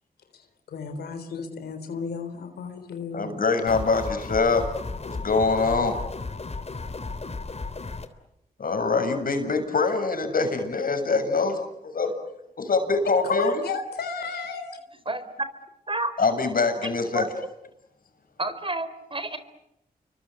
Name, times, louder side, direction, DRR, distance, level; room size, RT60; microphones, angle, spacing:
voice 1, 0.7-3.3 13.3-14.7, left 5 dB, 90° left, 7 dB, 3.9 m, -32 dB
voice 2, 3.1-4.7 5.0-6.0 8.6-12.1 12.6-13.6 16.2-17.3, left 4 dB, 60° left, 7 dB, 6.9 m, -24 dB
sound 1, 3.7-8.1, left 3 dB, 40° left, 3.4 m, -34 dB
voice 3, 18.4-19.4, right 2 dB, 35° right, 11 dB, 4.3 m, -29 dB
29.0 x 24.0 x 8.3 m, 0.82 s
cardioid pair, 50°, 16 cm